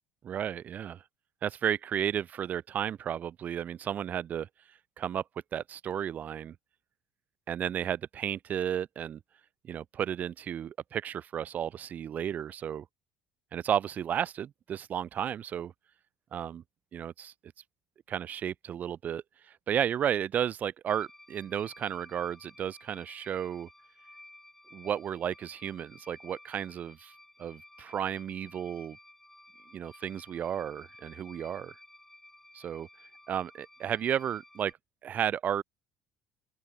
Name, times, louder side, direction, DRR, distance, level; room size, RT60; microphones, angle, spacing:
voice 1, 0.2-1.0 1.4-4.5 5.0-5.2 5.5-6.6 7.5-9.2 9.6-12.9 13.5-15.7 16.3-16.6 16.9-17.3 18.1-23.7 24.7-27.1 27.4-29.0 29.7-31.7 32.5-32.9 33.3-34.7 35.0-35.6, right 9 dB, 45° right, 0.5 m, -33 dB
sound 1, 20.9-34.7, left 1 dB, 10° left, 5.6 m, -55 dB
open air
hypercardioid pair, 65°, 4 cm